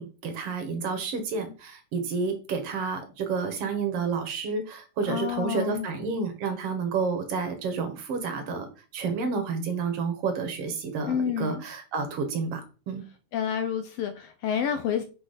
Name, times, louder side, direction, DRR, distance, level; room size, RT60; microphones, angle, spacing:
voice 1, 0.0-8.7 8.9-13.0, right 5 dB, 60° right, 1.7 m, -30 dB
voice 2, 5.1-5.9 11.1-11.6 13.3-15.0, left 8 dB, 85° left, 1.4 m, -29 dB
6.0 x 3.9 x 4.9 m
omnidirectional pair, 3.5 m